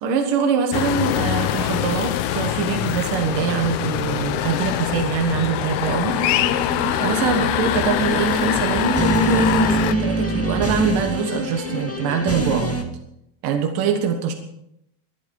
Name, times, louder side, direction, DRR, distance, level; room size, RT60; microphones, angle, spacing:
voice 1, 0.0-6.2 7.0-12.7 13.4-14.3, right 6 dB, 65° right, 3 dB, 3.0 m, -23 dB
sound 1, 0.7-9.9, left 12 dB, 90° left, 1.6 m, -24 dB
sound 2, 6.1-12.8, right 1 dB, 10° left, 0.6 m, -25 dB
22.5 x 12.0 x 4.8 m, 0.80 s
omnidirectional pair, 4.3 m